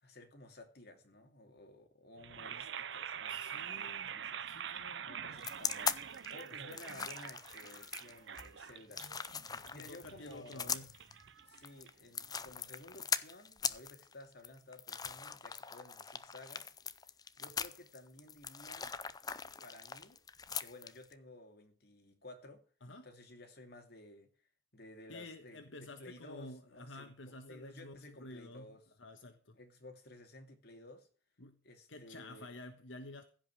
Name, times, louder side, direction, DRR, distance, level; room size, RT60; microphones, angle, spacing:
voice 1, 0.0-4.8 5.0-9.1 9.7-10.8 11.4-16.7 17.4-19.0 19.6-20.2 20.6-22.6 23.0-24.3 24.7-28.8 29.5-31.1 31.6-32.5, left 1 dB, 55° left, 2.6 m, -55 dB
sound 1, 2.2-12.3, right 8 dB, 70° right, 0.7 m, -45 dB
voice 2, 3.3-4.1 4.5-5.1 6.6-6.8 9.5-10.9 22.8-23.1 25.1-29.6 31.4-31.6 31.9-33.2, left 2 dB, 85° left, 1.4 m, -51 dB
sound 2, 5.4-21.1, left 6 dB, 20° left, 0.5 m, -41 dB
15.5 x 5.4 x 7.9 m
head